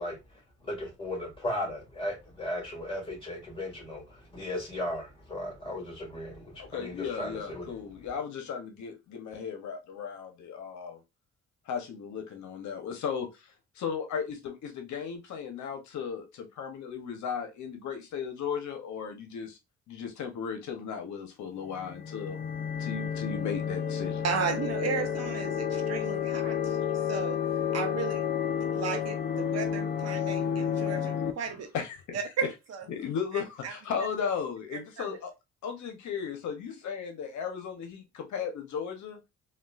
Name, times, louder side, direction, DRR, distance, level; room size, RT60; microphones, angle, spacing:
voice 1, 0.0-7.8, left 1 dB, 20° left, 1.9 m, -36 dB
voice 2, 6.6-11.0 11.7-19.6 19.9-22.4 22.8-24.2 26.8-26.9 31.7-32.2 32.9-35.3 35.6-39.2, left 7 dB, 70° left, 0.8 m, -36 dB
sound 1, 21.7-31.3, left 8 dB, 35° left, 0.4 m, -31 dB
voice 3, 24.2-26.8 27.1-27.4 27.7-28.3 28.7-31.7 32.1-32.9 33.3-33.7 34.0-34.1 34.7-35.2, right 6 dB, 55° right, 0.7 m, -34 dB
3.7 x 2.3 x 2.3 m
cardioid pair, 90°, 30 cm